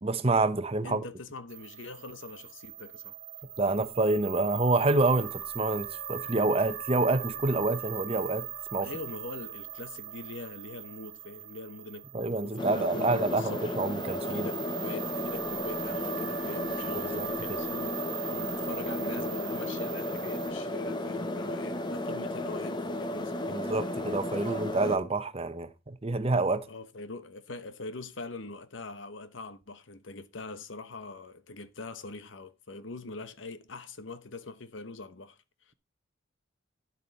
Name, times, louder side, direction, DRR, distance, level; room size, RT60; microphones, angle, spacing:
voice 1, 0.0-1.0 3.6-8.9 12.1-14.5 16.9-17.6 23.5-26.7, right 2 dB, 30° right, 0.8 m, -28 dB
voice 2, 0.8-3.2 8.8-12.1 12.4-13.7 14.3-18.0 18.2-23.6 24.5-24.6 26.6-35.4 35.7-35.8, left 3 dB, 70° left, 1.0 m, -43 dB
sound 1, 1.5-20.5, right 10 dB, 85° right, 1.2 m, -41 dB
sound 2, 12.6-25.0, left 1 dB, 25° left, 0.9 m, -34 dB
10.5 x 7.6 x 4.0 m
head